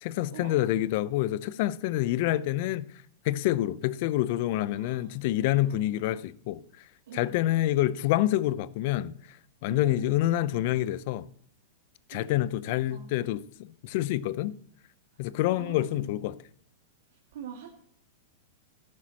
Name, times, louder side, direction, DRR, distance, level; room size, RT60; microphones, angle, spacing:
voice 1, 0.0-2.9 3.2-6.6 7.1-9.1 9.6-11.3 12.1-14.6 15.2-16.4, left 14 dB, 55° left, 0.6 m, -27 dB
voice 2, 4.7-5.1 5.5-5.9 7.1-7.5 9.7-10.2 12.1-13.1 15.1-16.1 17.3-17.7, right 8 dB, 70° right, 1.9 m, -45 dB
14.0 x 11.0 x 2.9 m
hypercardioid pair, 110°, 0 cm